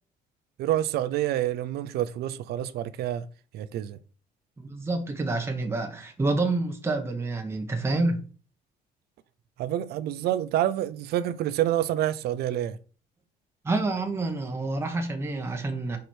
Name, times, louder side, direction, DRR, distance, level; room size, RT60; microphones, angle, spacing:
voice 1, 0.6-3.3 3.5-4.0 9.6-12.8, right 12 dB, 70° right, 0.6 m, -27 dB
voice 2, 4.6-8.2 13.6-16.0, right 2 dB, 15° right, 1.1 m, -28 dB
4.9 x 4.6 x 4.4 m
cardioid pair, 110°, 17 cm